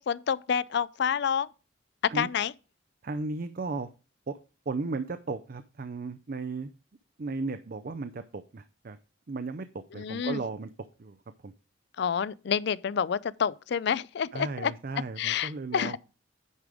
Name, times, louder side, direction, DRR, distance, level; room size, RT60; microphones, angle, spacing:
voice 1, 0.0-1.5 2.1-2.5 9.9-10.4 12.0-14.7 15.2-16.0, left 7 dB, 60° left, 0.4 m, -28 dB
voice 2, 3.0-3.9 4.3-4.4 4.7-6.7 7.2-9.0 9.3-11.2 11.4-11.5 14.3-16.0, right 3 dB, 50° right, 0.5 m, -35 dB
9.6 x 5.0 x 4.9 m
head